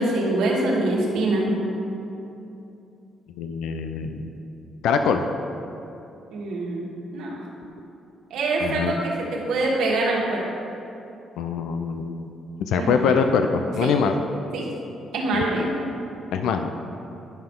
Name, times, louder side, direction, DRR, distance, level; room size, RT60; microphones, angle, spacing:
voice 1, 0.0-1.5 6.3-6.9 7.1-7.4 8.3-10.4 12.7-13.2 13.8-13.9 14.5-14.7 15.1-15.7, right 2 dB, 85° right, -3 dB, 1.6 m, -24 dB
voice 2, 3.4-4.3 4.8-5.2 8.6-8.9 11.4-12.3 12.6-14.1 15.3-15.4 16.3-16.8, left 6 dB, 85° left, 6 dB, 0.4 m, -23 dB
10.5 x 5.7 x 3.7 m, 2.8 s
cardioid pair, 90°, 0 cm